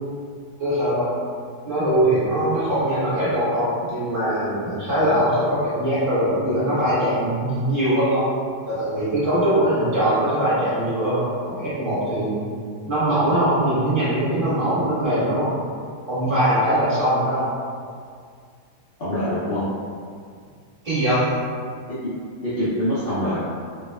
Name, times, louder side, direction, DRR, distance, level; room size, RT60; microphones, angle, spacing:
voice 1, 0.6-1.1 1.6-8.3 8.7-12.4 12.9-15.5 16.1-17.5 20.8-21.2, right 1 dB, 35° right, -12 dB, 1.2 m, -21 dB
voice 2, 19.0-19.6 21.9-22.1 22.4-23.4, equal, 70° left, -13 dB, 0.5 m, -25 dB
2.9 x 2.2 x 2.2 m, 2.1 s
omnidirectional pair, 1.7 m